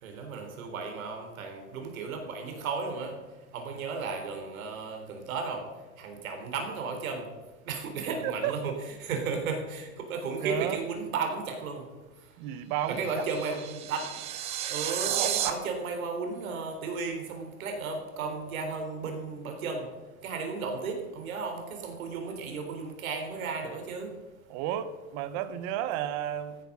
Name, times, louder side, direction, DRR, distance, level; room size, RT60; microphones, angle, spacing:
voice 1, 0.0-3.1 3.5-5.6 6.0-7.2 7.7-8.7 9.0-11.8 12.9-14.1 14.7-19.9 20.2-24.1, right 4 dB, 70° right, 4 dB, 3.8 m, -34 dB
voice 2, 8.2-8.6 10.4-10.8 12.4-13.1 24.5-26.6, right 11 dB, 35° right, 13 dB, 1.0 m, -32 dB
sound 1, 12.8-15.5, right 11 dB, 15° right, 0.5 m, -32 dB
14.0 x 9.3 x 6.1 m, 1.2 s
supercardioid pair, 155°, 43 cm